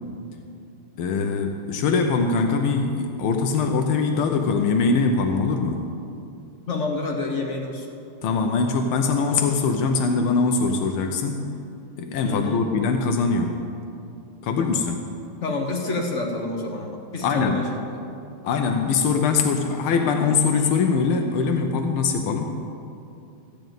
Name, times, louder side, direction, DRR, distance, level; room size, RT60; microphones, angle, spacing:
voice 1, 1.0-5.8 8.2-11.5 12.0-13.6 14.4-15.1 17.2-17.6 18.4-22.5, left 4 dB, 85° left, 4 dB, 1.6 m, -22 dB
voice 2, 6.7-7.9 12.2-12.6 15.4-18.0, left 2 dB, 45° left, 2 dB, 1.1 m, -28 dB
14.5 x 5.2 x 9.1 m, 2.5 s
omnidirectional pair, 2.3 m